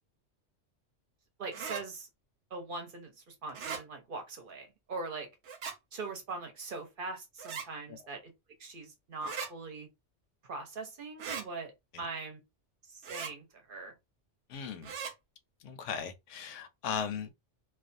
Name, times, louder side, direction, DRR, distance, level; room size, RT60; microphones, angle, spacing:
voice 1, 1.4-2.1 2.5-5.3 5.9-8.3 8.6-9.9 10.4-11.7 12.0-12.4 12.8-13.9, right 3 dB, 50° right, 0.9 m, -41 dB
sound 1, 1.5-1.8 3.5-3.8 5.4-5.8 7.4-7.7 9.2-9.5 11.2-11.5 13.0-13.3 14.8-15.1, right 6 dB, 75° right, 1.0 m, -39 dB
voice 2, 14.5-14.9 15.6-17.4, left 7 dB, 80° left, 0.9 m, -38 dB
2.4 x 2.3 x 2.5 m
omnidirectional pair, 1.2 m